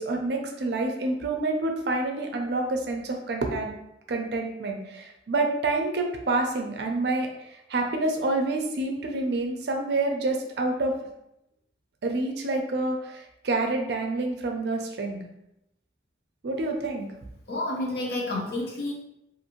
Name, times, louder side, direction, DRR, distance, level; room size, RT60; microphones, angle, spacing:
voice 1, 0.0-3.8 4.1-10.9 12.0-15.2 16.4-17.1, right 2 dB, 60° right, 3 dB, 0.4 m, -28 dB
voice 2, 17.5-18.9, left 2 dB, 55° left, -2 dB, 0.7 m, -30 dB
2.6 x 2.5 x 2.9 m, 0.83 s
head